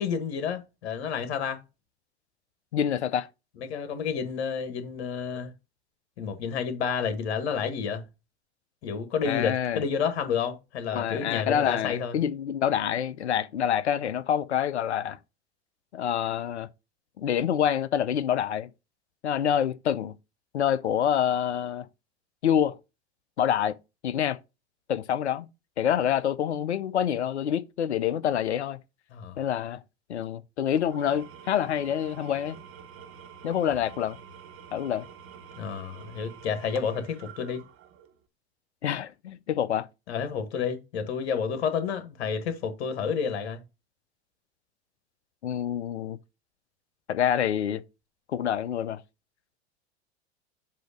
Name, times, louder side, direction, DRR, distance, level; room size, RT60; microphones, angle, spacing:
voice 1, 0.0-1.6 3.6-5.5 6.2-8.0 8.8-12.1 29.1-29.4 35.6-37.6 40.1-43.6, left 6 dB, 65° left, 1.5 m, -30 dB
voice 2, 2.7-3.3 9.2-9.8 10.9-15.2 15.9-16.7 17.2-18.7 19.2-20.2 20.5-21.9 22.4-22.8 23.4-23.8 24.0-24.4 24.9-25.5 25.8-28.8 29.4-29.8 30.1-32.6 33.4-34.2 34.7-35.1 38.8-39.9 45.4-46.2 47.1-47.8 48.3-49.0, left 9 dB, 85° left, 0.6 m, -27 dB
Engine / Tools, 30.8-38.2, right 7 dB, 40° right, 1.1 m, -48 dB
7.7 x 2.9 x 5.1 m
hypercardioid pair, 85°, 33 cm